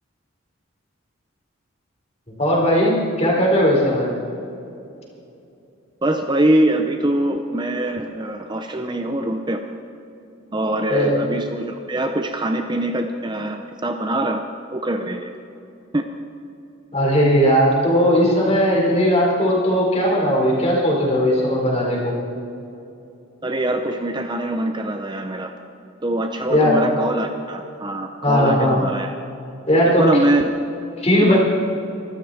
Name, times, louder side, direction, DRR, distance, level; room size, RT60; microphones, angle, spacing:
voice 1, 2.4-4.1 10.9-11.1 16.9-22.1 26.5-26.8 28.2-28.8 29.7-30.0 31.0-31.4, equal, 30° left, -3 dB, 4.4 m, -18 dB
voice 2, 6.0-9.6 10.5-14.4 14.7-15.3 15.9-16.0 23.4-25.5 26.0-29.1 29.8-30.5 31.2-31.4, right 1 dB, 20° right, 5 dB, 0.7 m, -23 dB
24.5 x 13.5 x 4.3 m, 2.7 s
head